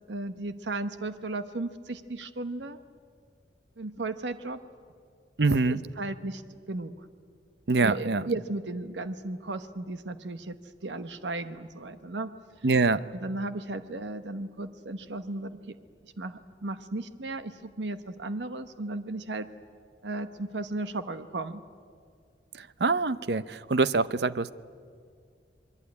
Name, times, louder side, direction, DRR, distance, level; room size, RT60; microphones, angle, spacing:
voice 1, 0.1-2.8 3.8-4.6 5.6-6.4 6.7-7.1 7.8-10.6 10.8-12.3 13.2-15.8 16.2-19.5 20.0-21.6, right 2 dB, 90° right, 11 dB, 1.1 m, -35 dB
voice 2, 5.4-5.8 7.7-8.2 12.6-13.0 22.6-24.5, right 3 dB, 70° right, 15 dB, 0.7 m, -24 dB
28.0 x 22.0 x 9.7 m, 2.1 s
head